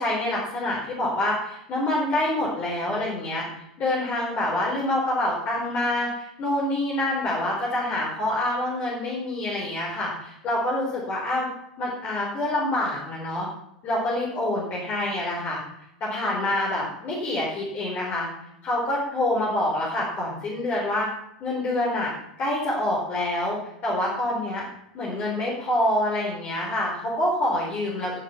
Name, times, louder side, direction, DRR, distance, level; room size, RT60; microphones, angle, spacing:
voice 1, 0.0-3.4 3.8-11.5 11.8-13.5 13.8-15.6 16.0-18.3 18.6-21.1 21.4-22.1 22.4-24.6 24.9-28.2, left 1 dB, 40° left, -4 dB, 4.3 m, -26 dB
16.0 x 7.0 x 5.8 m, 0.82 s
hypercardioid pair, 90°, 4 cm